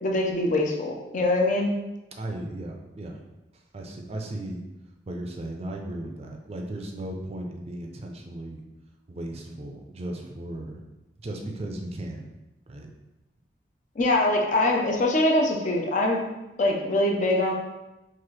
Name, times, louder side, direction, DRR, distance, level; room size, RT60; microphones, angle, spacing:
voice 1, 0.0-1.7 14.0-16.2 16.6-17.5, left 1 dB, 45° left, 1 dB, 0.6 m, -23 dB
voice 2, 2.2-3.2 3.7-4.6 5.1-8.6 9.1-10.8 11.2-12.3 12.7-12.9, right 1 dB, 35° right, 2 dB, 0.5 m, -36 dB
3.9 x 2.5 x 3.1 m, 0.99 s
head